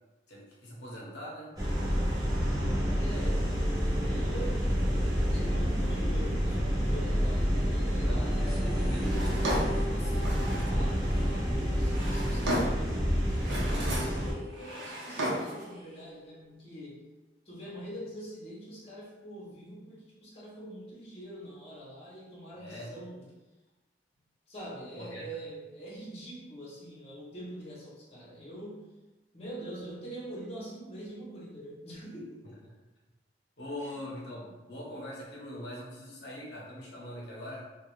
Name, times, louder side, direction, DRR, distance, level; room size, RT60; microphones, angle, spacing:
voice 1, 0.3-1.5 8.0-10.2 22.6-22.9 24.9-25.3 33.6-37.6, equal, 70° left, -5 dB, 0.7 m, -42 dB
sound 1, 1.6-14.3, equal, 20° right, 0.6 m, -28 dB
voice 2, 3.0-3.5 3.8-4.9 5.3-8.3 10.7-13.1 13.5-17.1 17.4-23.2 24.5-28.8 29.3-32.4 33.8-34.0, right 1 dB, 35° left, -7 dB, 0.8 m, -44 dB
sound 2, 8.4-13.1 13.4-13.5 13.8-16.4, left 1 dB, 60° right, 1.2 m, -45 dB
Drawer open or close, 9.0-10.8 11.6-12.9 13.3-14.2 14.5-15.6, equal, 75° right, 0.7 m, -34 dB
2.3 x 2.3 x 3.1 m, 1.1 s
head